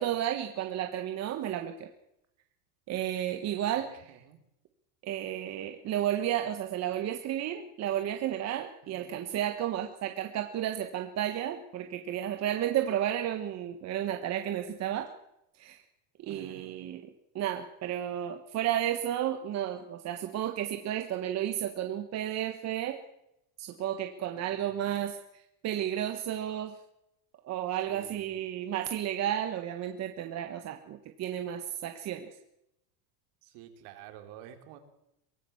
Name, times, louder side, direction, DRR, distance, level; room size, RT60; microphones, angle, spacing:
voice 1, 0.0-1.9 2.9-4.0 5.0-15.1 15.6-15.8 16.2-17.0 17.3-23.0 23.6-26.7 27.4-32.3, right 11 dB, 35° right, 6 dB, 1.5 m, -32 dB
voice 2, 3.8-4.4 8.8-9.2 16.3-16.8 24.3-25.0 26.7-26.8 27.9-28.5 33.4-34.8, right 10 dB, 55° right, 6 dB, 4.0 m, -51 dB
24.0 x 17.5 x 7.2 m, 0.83 s
cardioid pair, 160°, 47 cm